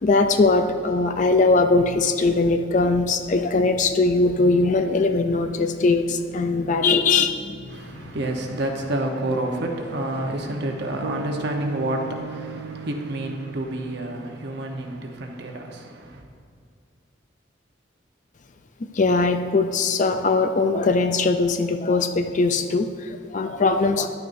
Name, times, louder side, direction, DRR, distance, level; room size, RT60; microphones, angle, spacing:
voice 1, 0.0-8.1 18.9-24.1, left 3 dB, 40° left, 0.4 m, -21 dB
voice 2, 7.7-16.2, right 1 dB, 60° right, 1.0 m, -29 dB
sound 1, 11.0-15.4, right 4 dB, 80° right, 0.4 m, -37 dB
10.5 x 9.3 x 2.6 m
head